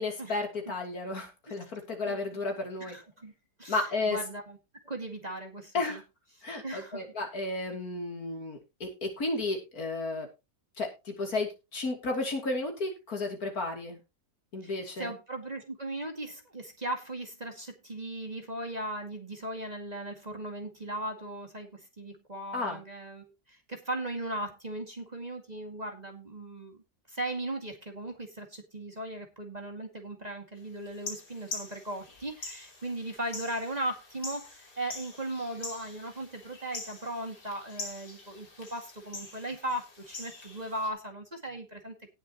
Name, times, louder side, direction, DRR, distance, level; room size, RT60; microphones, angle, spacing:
voice 1, 0.0-3.0 3.7-4.2 5.7-6.0 6.4-10.3 10.8-14.0 14.5-15.1 22.5-22.8, left 2 dB, 65° left, 3 dB, 3.4 m, -33 dB
voice 2, 2.8-3.3 3.6-3.8 4.1-4.6 4.8-6.0 6.6-7.1 14.6-26.8 27.1-41.9, right 1 dB, 25° right, 3 dB, 2.1 m, -38 dB
sound 1, 30.9-40.9, left 3 dB, 90° left, 3.8 m, -44 dB
18.0 x 7.4 x 2.9 m, 0.26 s
omnidirectional pair, 1.7 m